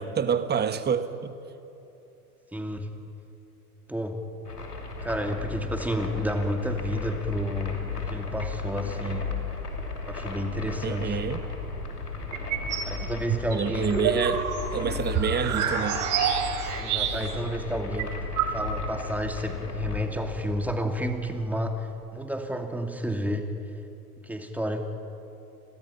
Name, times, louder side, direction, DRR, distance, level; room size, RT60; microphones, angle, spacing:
voice 1, 0.0-1.3 10.8-11.4 13.5-16.0, right 7 dB, 20° right, 11 dB, 1.4 m, -28 dB
voice 2, 2.5-2.9 3.9-4.2 5.0-9.3 10.0-11.2 12.9-14.0 16.8-18.2 18.5-23.5 24.2-24.8, equal, 5° right, 4 dB, 2.5 m, -31 dB
sound 1, 4.5-21.8, left 4 dB, 85° left, 3.0 m, -35 dB
sound 2, 12.3-12.9 13.3-17.5 17.7-17.8 18.0-19.0, right 7 dB, 40° right, 3.6 m, -28 dB
30.0 x 22.5 x 5.8 m, 3.0 s
figure-of-eight pair, 85°, 46 cm